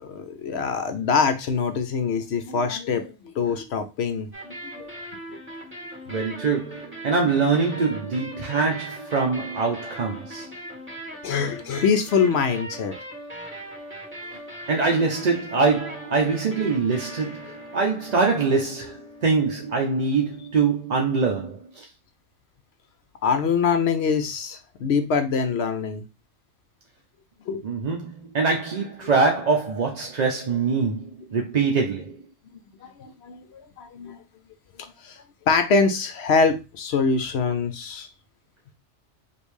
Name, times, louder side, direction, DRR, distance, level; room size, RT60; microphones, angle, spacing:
voice 1, 0.0-4.9 5.3-5.4 11.2-13.0 21.1-21.2 23.2-26.0 27.5-27.6 32.8-34.2 35.0-35.1 35.5-38.1, left 5 dB, 65° left, 0.7 m, -24 dB
sound 1, 4.3-21.2, right 1 dB, 10° right, 1.4 m, -40 dB
voice 2, 6.1-10.5 14.7-21.9 27.6-32.2, right 4 dB, 50° right, 0.5 m, -24 dB
5.1 x 2.6 x 3.2 m
omnidirectional pair, 1.4 m